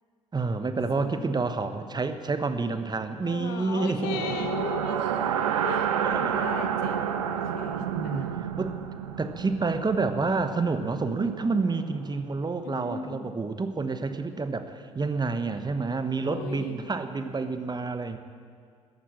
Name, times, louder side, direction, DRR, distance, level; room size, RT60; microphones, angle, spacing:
voice 1, 0.3-4.3 5.4-5.5 6.1-6.4 7.9-8.8 9.2-18.2, right 4 dB, 25° right, 9 dB, 1.1 m, -29 dB
voice 2, 3.2-5.2 5.6-8.3 12.6-13.3 16.3-16.8, left 6 dB, 65° left, 6 dB, 1.3 m, -37 dB
sound 1, 4.0-12.0, right 8 dB, 80° right, 0.7 m, -30 dB
14.0 x 10.5 x 8.5 m, 2.1 s
figure-of-eight pair, 50°, 17 cm